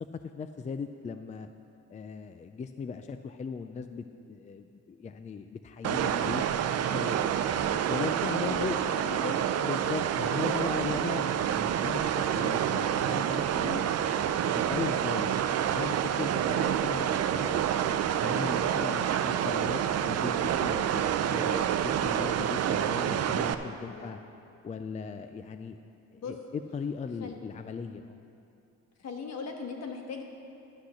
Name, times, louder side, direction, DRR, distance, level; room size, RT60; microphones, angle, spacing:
voice 1, 0.4-1.5 1.9-6.4 6.9-7.2 7.9-8.8 9.6-13.9 14.4-15.3 15.7-17.7 18.2-24.2 24.6-25.8 26.1-28.2, left 5 dB, 25° left, 8 dB, 0.4 m, -38 dB
sound 1, 5.8-23.5, right 9 dB, 55° right, 0.5 m, -28 dB
voice 2, 8.2-8.7 9.0-9.4 23.9-24.1 26.2-26.3 27.2-27.4 29.0-30.2, left 5 dB, 60° left, 2 dB, 1.4 m, -38 dB
11.5 x 6.0 x 6.4 m, 2.7 s
cardioid pair, 90°, 30 cm